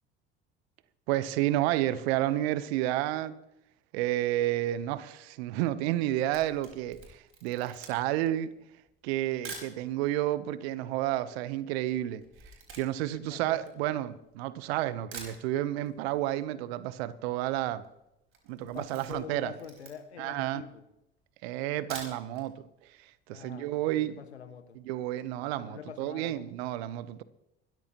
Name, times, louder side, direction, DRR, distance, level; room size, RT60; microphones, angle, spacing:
voice 1, 1.1-3.4 3.9-8.5 9.0-12.2 12.8-17.8 18.5-19.5 20.2-20.6 21.4-22.6 22.9-24.2 24.7-27.2, right 14 dB, 70° right, 0.9 m, -31 dB
Camera, 6.2-9.8 10.5-10.6 10.7-14.4 14.8-14.9 15.1-16.0 16.2-16.3 16.6-16.7 16.9-17.3 17.7-17.9 18.3-20.3 20.8-20.9 21.7-22.5 22.8-22.9 23.3-23.4, right 4 dB, 40° right, 4.7 m, -47 dB
voice 2, 13.1-13.7 18.6-20.8 23.3-24.8 25.6-26.5, left 8 dB, 90° left, 1.1 m, -45 dB
23.5 x 13.5 x 3.0 m
hypercardioid pair, 65°, 32 cm